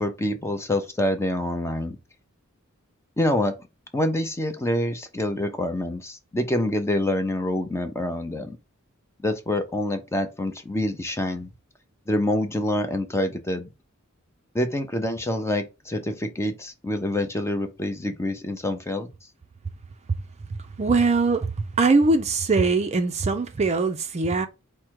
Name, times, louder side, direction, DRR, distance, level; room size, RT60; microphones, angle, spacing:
voice 1, 0.0-2.0 3.2-3.5 3.9-8.6 9.2-11.5 12.1-13.7 14.5-19.1, left 1 dB, 10° left, 0.6 m, -26 dB
voice 2, 20.8-24.5, right 3 dB, 30° right, 0.4 m, -22 dB
4.7 x 2.2 x 4.5 m
head